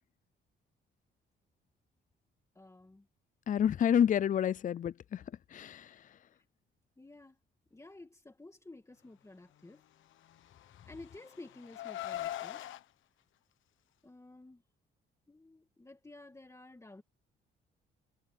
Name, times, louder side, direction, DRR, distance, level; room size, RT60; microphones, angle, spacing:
voice 1, 2.5-3.1 7.0-7.4 7.7-9.8 10.9-12.6 14.0-14.6 15.3-17.0, left 2 dB, 15° left, 2.3 m, -52 dB
voice 2, 3.5-5.2 5.5-5.9, left 9 dB, 40° left, 0.5 m, -28 dB
Car, 10.3-12.8, left 13 dB, 80° left, 1.2 m, -41 dB
cardioid pair, 90°, 20 cm